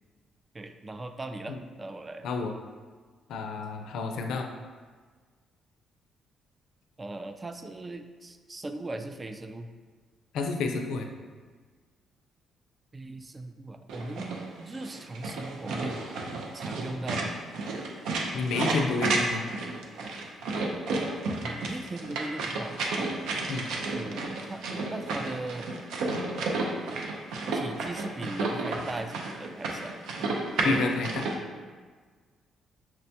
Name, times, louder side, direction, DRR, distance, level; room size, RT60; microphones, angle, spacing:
voice 1, 0.5-2.3 7.0-9.7 12.9-16.1 16.5-17.3 21.4-22.8 23.9-25.7 27.5-29.9, right 2 dB, 25° right, 8 dB, 0.3 m, -39 dB
voice 2, 2.2-2.6 3.3-4.5 10.3-11.1 18.3-19.4 23.5-23.7 30.6-31.3, left 3 dB, 80° left, 4 dB, 0.4 m, -29 dB
sound 1, 13.9-31.3, right 2 dB, 85° right, 0.5 m, -32 dB
6.0 x 2.2 x 2.7 m, 1.5 s
cardioid pair, 90°, 0 cm